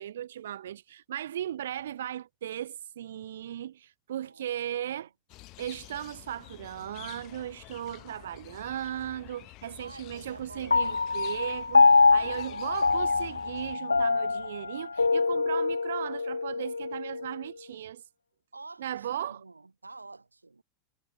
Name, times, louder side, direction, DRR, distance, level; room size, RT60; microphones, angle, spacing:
voice 1, 0.0-5.1 5.6-18.0 18.8-19.4, right 11 dB, 65° right, 1.7 m, -37 dB
voice 2, 4.2-5.1 9.8-11.0 12.1-13.2 18.5-20.6, right 3 dB, 80° right, 2.1 m, -49 dB
sound 1, 5.3-13.8, left 21 dB, 40° left, 1.3 m, -49 dB
Piano, 10.7-17.4, left 4 dB, 80° left, 0.5 m, -25 dB
figure-of-eight pair, 85°, 0 cm